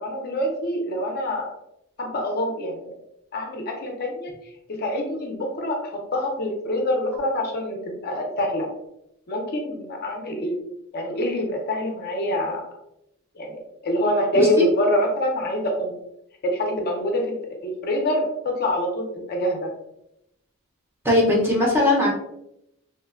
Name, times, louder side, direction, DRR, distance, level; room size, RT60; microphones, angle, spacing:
voice 1, 0.0-1.5 2.0-2.9 3.3-4.3 4.8-8.7 9.3-10.6 10.9-12.6 13.4-15.9 16.4-17.3 17.6-19.7, left 1 dB, 45° left, 1 dB, 0.5 m, -25 dB
voice 2, 14.3-14.7 21.0-22.1, left 1 dB, 10° right, -4 dB, 0.6 m, -19 dB
3.0 x 2.1 x 2.3 m, 0.81 s
head